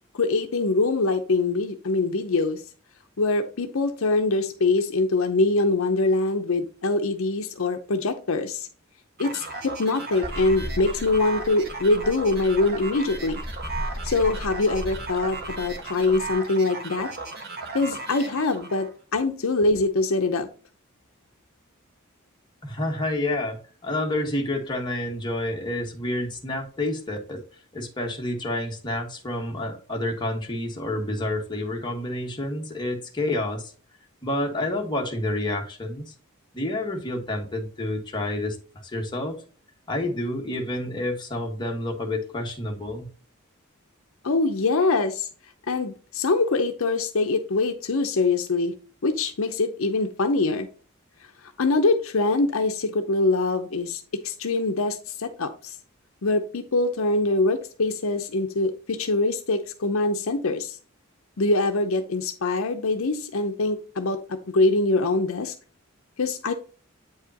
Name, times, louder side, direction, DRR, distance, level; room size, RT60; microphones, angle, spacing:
voice 1, 0.2-2.6 3.2-8.7 9.2-13.4 14.0-17.1 17.7-20.5 44.2-45.3 45.7-48.7 49.0-50.7 51.6-55.8 56.2-60.8 61.4-65.5 66.2-66.5, left 3 dB, 70° left, 0.7 m, -24 dB
sound 1, 9.2-18.9, right 3 dB, 50° right, 1.5 m, -36 dB
sound 2, 10.2-16.3, equal, ahead, 0.8 m, -37 dB
voice 2, 22.6-27.4 27.7-33.7 34.2-36.1 36.5-39.4 39.9-43.1, left 1 dB, 20° left, 1.5 m, -29 dB
8.6 x 4.8 x 2.8 m
head